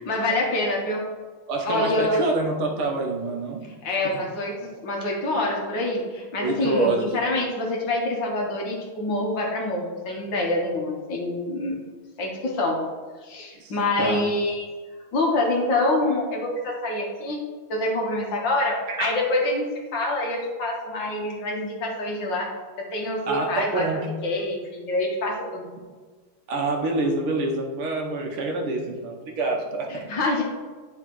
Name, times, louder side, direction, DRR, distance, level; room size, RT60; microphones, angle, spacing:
voice 1, 0.1-1.0 1.6-2.3 3.8-11.8 12.2-12.8 13.2-14.7 15.1-17.4 17.7-22.5 22.8-23.9 24.2-25.7 29.9-30.4, left 2 dB, 60° left, -1 dB, 1.9 m, -26 dB
voice 2, 1.5-3.6 6.4-7.1 13.6-13.7 14.0-14.2 18.9-19.1 23.3-24.0 26.5-30.0, right 2 dB, 80° right, 1 dB, 1.9 m, -26 dB
10.5 x 4.9 x 3.1 m, 1.4 s
omnidirectional pair, 2.3 m